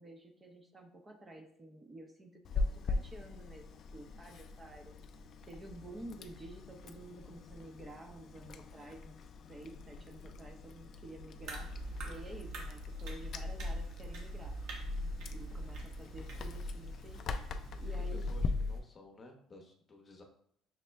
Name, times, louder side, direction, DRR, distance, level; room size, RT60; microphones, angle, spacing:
voice 1, 0.0-4.9 5.5-9.2 9.5-11.7 12.0-14.6 15.3-17.2 17.8-18.3, right 1 dB, 20° right, 3 dB, 0.7 m, -51 dB
Chewing mastication, 2.4-18.5, left 4 dB, 50° left, 0.3 m, -43 dB
sound 1, 11.4-18.8, left 1 dB, 65° right, 1.0 m, -40 dB
voice 2, 17.7-20.2, left 2 dB, 30° left, 2 dB, 0.8 m, -55 dB
6.1 x 2.1 x 3.3 m, 0.67 s
supercardioid pair, 95°, 0 cm